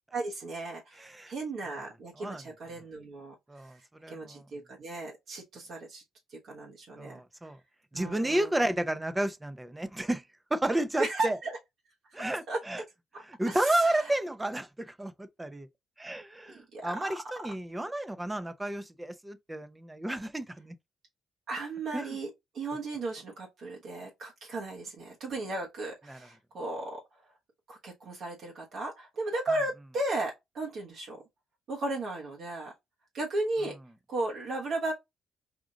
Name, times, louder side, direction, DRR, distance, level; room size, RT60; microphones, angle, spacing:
voice 1, 0.1-3.3 3.6-3.8 4.1-6.0 6.3-7.2 7.9-8.5 11.0-11.6 12.5-12.6 13.1-14.1 16.5-17.0 21.5-27.0 27.7-31.2 31.7-32.7 33.1-33.8 34.1-34.9, right 2 dB, 65° right, 1.2 m, -35 dB
voice 2, 1.0-1.3 1.7-1.8 2.2-2.4 3.5-4.4 7.0-7.6 7.9-10.2 10.5-11.4 12.1-12.8 13.2-15.7 16.0-20.8 21.9-22.2 26.1-26.2, right 1 dB, 15° right, 0.6 m, -32 dB
5.0 x 2.5 x 3.8 m
cardioid pair, 90°, 0 cm